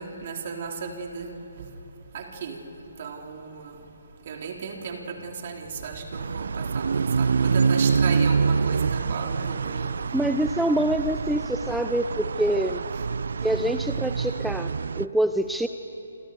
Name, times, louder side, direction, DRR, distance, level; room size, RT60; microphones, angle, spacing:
voice 1, 0.0-1.7 2.1-2.7 3.0-3.8 4.3-9.9 12.9-13.0, right 5 dB, 45° right, 2 dB, 4.0 m, -35 dB
sound 1, 6.1-15.1, right 5 dB, 60° right, 0.5 m, -26 dB
voice 2, 10.1-12.8 13.4-14.7 15.0-15.7, right 1 dB, ahead, 8 dB, 0.6 m, -25 dB
29.0 x 27.5 x 7.0 m, 2.9 s
figure-of-eight pair, 135°, 0 cm